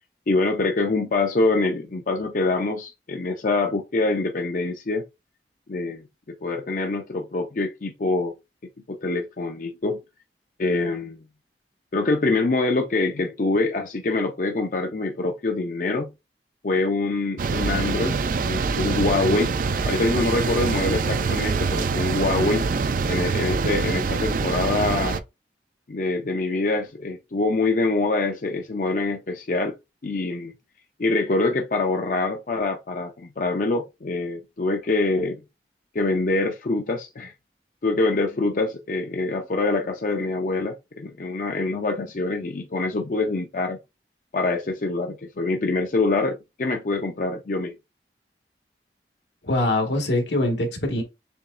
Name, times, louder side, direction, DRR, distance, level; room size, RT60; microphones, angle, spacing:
voice 1, 0.3-5.0 5.7-8.3 8.9-10.0 10.6-11.2 11.9-16.1 16.6-19.5 19.8-22.7 23.1-25.2 25.9-29.8 30.0-30.5 31.0-35.4 35.9-37.3 37.8-43.8 44.3-47.7, left 3 dB, 50° left, 0.5 m, -25 dB
sound 1, 17.4-25.2, right 4 dB, 50° right, 0.4 m, -25 dB
voice 2, 49.4-51.0, left 1 dB, 80° left, 1.5 m, -23 dB
7.0 x 3.0 x 2.5 m
head